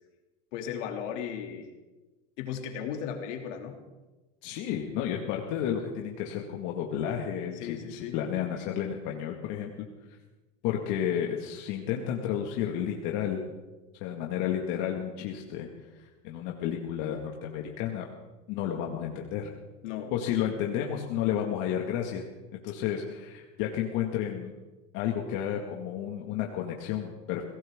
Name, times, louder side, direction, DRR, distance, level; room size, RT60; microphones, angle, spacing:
voice 1, 0.5-1.7 2.4-3.8 7.5-8.2 19.8-20.1, left 8 dB, 75° left, 3 dB, 2.9 m, -36 dB
voice 2, 4.4-9.9 10.6-13.4 14.0-15.7 16.2-18.1 18.5-19.5 20.1-22.2 22.6-24.5 24.9-27.4, left 9 dB, 60° left, 0 dB, 2.0 m, -31 dB
22.5 x 17.5 x 3.7 m, 1.2 s
supercardioid pair, 130°, 36 cm